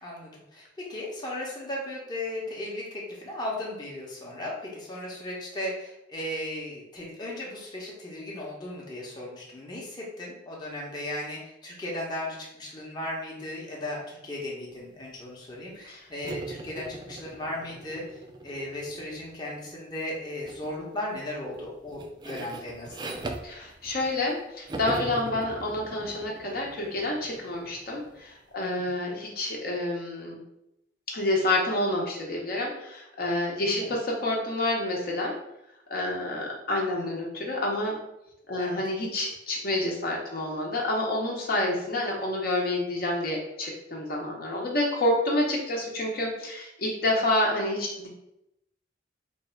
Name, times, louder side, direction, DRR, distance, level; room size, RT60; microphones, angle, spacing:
voice 1, 0.0-23.1 28.6-28.9 33.7-33.9 38.6-38.8, left 1 dB, 25° left, -4 dB, 0.8 m, -36 dB
sound 1, 16.2-19.5 20.4-20.8 21.1-24.3 24.7-28.2, right 2 dB, 25° right, 0.3 m, -40 dB
voice 2, 23.4-30.4 31.1-35.4 35.9-38.0 38.5-48.1, left 1 dB, 50° left, -2 dB, 0.8 m, -28 dB
3.1 x 2.4 x 4.3 m, 0.83 s
head